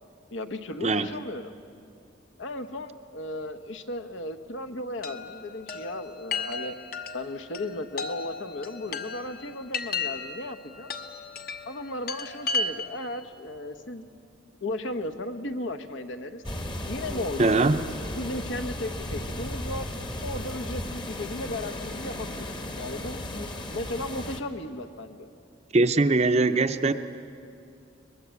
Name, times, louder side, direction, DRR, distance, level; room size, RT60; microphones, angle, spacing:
voice 1, 0.3-1.5 2.4-6.7 7.1-10.9 11.6-14.1 14.6-16.4 16.9-17.7 18.1-19.9 20.2-25.3, left 1 dB, 70° left, 8 dB, 1.1 m, -35 dB
Chime, 5.0-13.1, left 4 dB, 50° left, 1.1 m, -35 dB
sound 1, 16.4-24.4, left 1 dB, 25° left, 1.1 m, -35 dB
voice 2, 17.4-17.8 25.7-26.9, right 3 dB, 35° right, 10 dB, 0.7 m, -21 dB
23.0 x 20.5 x 8.3 m, 2.6 s
head